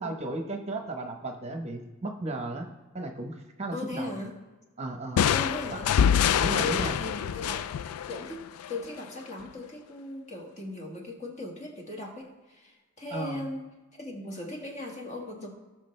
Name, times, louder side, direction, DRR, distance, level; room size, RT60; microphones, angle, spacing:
voice 1, 0.0-2.7 2.9-4.2 4.8-5.2 5.7-5.8 6.4-7.0 13.1-13.5, right 2 dB, 30° right, 3 dB, 0.9 m, -35 dB
voice 2, 3.7-4.4 5.3-5.9 6.4-7.7 8.1-13.6 14.0-15.5, left 2 dB, 30° left, 1 dB, 1.6 m, -38 dB
sound 1, 5.2-8.8, left 8 dB, 80° left, 0.3 m, -25 dB
18.0 x 6.0 x 3.3 m, 1.2 s
head